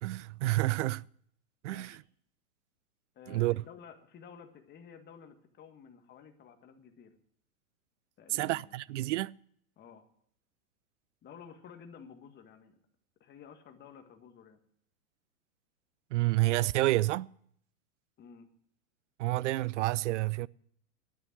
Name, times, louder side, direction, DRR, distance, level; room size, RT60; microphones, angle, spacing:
voice 1, 0.0-1.0 1.6-2.0 3.3-3.6 8.3-9.3 16.1-17.3 19.2-20.5, right 18 dB, 60° right, 0.5 m, -29 dB
voice 2, 1.6-2.0 3.1-7.1 8.2-8.8 9.8-10.1 11.2-12.7 13.2-14.6 18.2-18.5, left 7 dB, 25° left, 1.8 m, -52 dB
11.5 x 9.2 x 10.0 m
hypercardioid pair, 130°, 42 cm